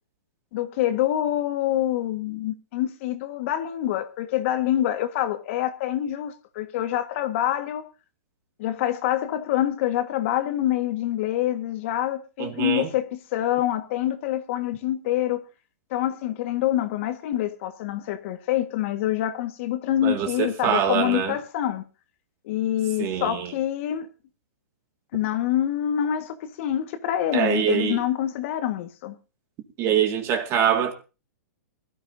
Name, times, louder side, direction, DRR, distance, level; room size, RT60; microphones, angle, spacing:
voice 1, 0.5-7.9 8.6-15.4 15.9-21.8 22.4-24.1 25.1-29.1, left 12 dB, 45° left, 1.7 m, -26 dB
voice 2, 12.4-12.9 20.0-21.4 23.0-23.5 27.3-28.0 29.8-30.9, right 9 dB, 30° right, 2.2 m, -24 dB
21.0 x 13.5 x 2.8 m
hypercardioid pair, 145°, 9 cm